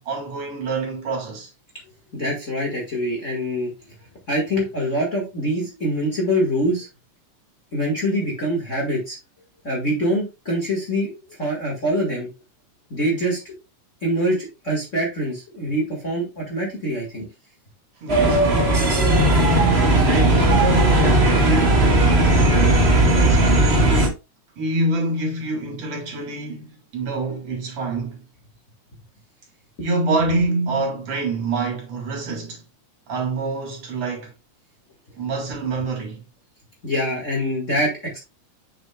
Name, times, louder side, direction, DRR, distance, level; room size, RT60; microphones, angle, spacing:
voice 1, 0.0-1.5 18.0-18.4 19.3-23.6 24.6-28.2 29.8-32.6 33.1-34.3 35.2-36.2, right 2 dB, 60° right, 3.2 m, -26 dB
voice 2, 2.1-3.7 4.3-6.9 7.7-9.2 9.6-12.3 12.9-13.5 14.0-17.3 36.8-38.2, equal, 30° left, 1.8 m, -24 dB
sound 1, 18.1-24.1, right 1 dB, 25° right, 1.5 m, -16 dB
7.3 x 6.8 x 2.3 m
omnidirectional pair, 3.4 m